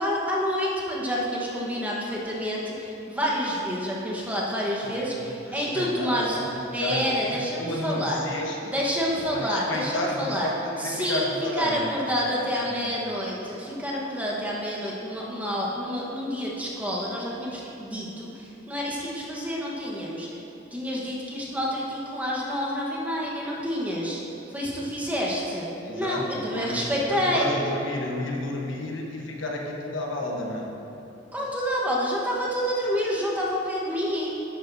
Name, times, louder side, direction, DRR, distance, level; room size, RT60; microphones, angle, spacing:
voice 1, 0.0-6.4 6.7-8.2 8.7-10.5 10.8-11.3 11.6-20.3 20.7-24.2 24.5-25.7 25.9-27.5 31.3-34.4, equal, 10° right, -4 dB, 1.2 m, -28 dB
voice 2, 4.8-8.7 9.3-12.0 12.4-12.9 25.8-30.7, left 1 dB, 75° left, -1 dB, 1.2 m, -32 dB
11.5 x 8.8 x 2.7 m, 2.9 s
head